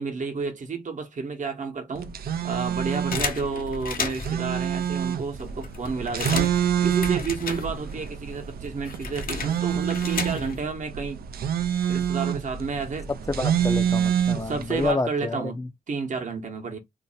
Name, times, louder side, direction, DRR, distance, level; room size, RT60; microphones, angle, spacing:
voice 1, 0.0-2.2 2.4-6.5 6.8-11.2 11.9-13.1 14.4-15.6 15.9-16.8, right 5 dB, 55° right, 0.9 m, -31 dB
sound 1, 2.0-14.9, right 9 dB, 80° right, 0.4 m, -27 dB
sound 2, 3.1-4.5 5.1-5.2 5.4-8.1 8.3-10.7, left 4 dB, 70° left, 0.8 m, -33 dB
voice 2, 13.3-15.7, left 3 dB, 20° left, 0.4 m, -29 dB
2.6 x 2.1 x 3.9 m
cardioid pair, 60°, 15 cm